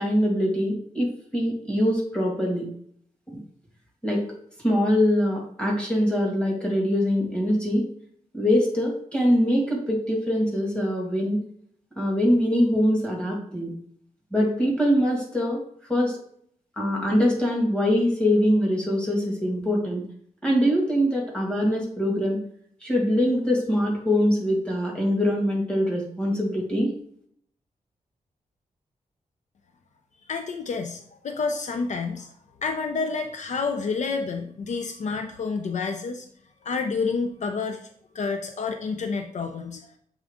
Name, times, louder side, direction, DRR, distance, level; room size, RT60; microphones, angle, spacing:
voice 1, 0.0-2.7 4.0-4.2 4.6-7.9 8.3-11.4 12.0-13.7 14.3-15.6 15.9-16.1 16.8-20.0 20.4-22.4 22.8-26.9, equal, 5° left, -2 dB, 1.9 m, -23 dB
voice 2, 30.3-32.3 32.6-36.3 36.6-39.9, left 4 dB, 60° left, 6 dB, 0.5 m, -29 dB
7.2 x 3.7 x 3.6 m, 0.63 s
wide cardioid pair, 140°, 13 cm